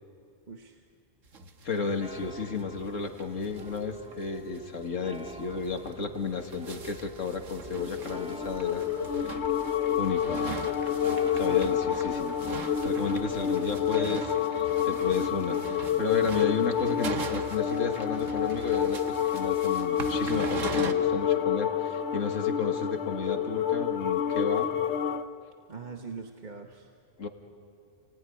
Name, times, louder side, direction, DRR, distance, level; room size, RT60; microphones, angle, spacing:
voice 1, 0.5-0.8 11.4-11.7 25.7-26.9, right 5 dB, 35° right, 3 dB, 1.3 m, -41 dB
sound 1, 1.3-1.8 2.1-2.2 2.4-2.5 2.9-3.0 3.2-3.8 4.1-4.2 4.6-4.7 5.1-5.3 5.9-20.9, right 5 dB, 85° right, 1.7 m, -41 dB
voice 2, 1.6-8.8 10.0-10.4 11.3-12.4 12.8-24.7 27.2-27.3, left 5 dB, 80° left, 4 dB, 2.2 m, -33 dB
sound 2, 2.0-13.4, right 2 dB, 10° right, 0.5 m, -46 dB
sound 3, 7.7-25.3, left 8 dB, 65° left, 1.1 m, -28 dB
29.5 x 19.0 x 9.9 m, 2.4 s
omnidirectional pair, 1.3 m